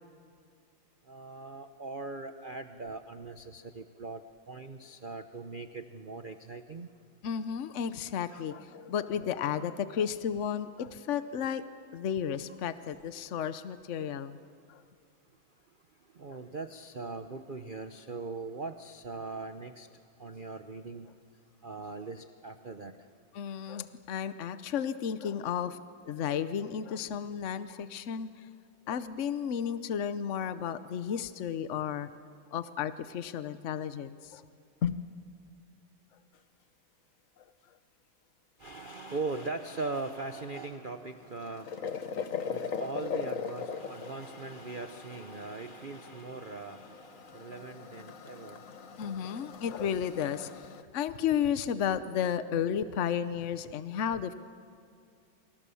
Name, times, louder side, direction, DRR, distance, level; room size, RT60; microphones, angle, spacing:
voice 1, 1.1-4.2 4.5-6.9 8.3-8.5 16.2-19.9 20.2-21.1 21.6-22.9 38.6-48.6, right 3 dB, 65° right, 8 dB, 0.5 m, -40 dB
voice 2, 7.2-11.6 11.9-14.4 14.7-14.8 23.3-25.8 26.0-28.5 28.9-32.1 32.5-34.4 34.8-35.1 37.4-37.5 49.0-50.6 50.9-54.3, left 8 dB, 65° left, 12 dB, 0.7 m, -33 dB
sound 1, 41.0-50.8, left 6 dB, 45° left, 1.3 m, -40 dB
28.0 x 26.0 x 7.1 m, 2.5 s
omnidirectional pair, 2.2 m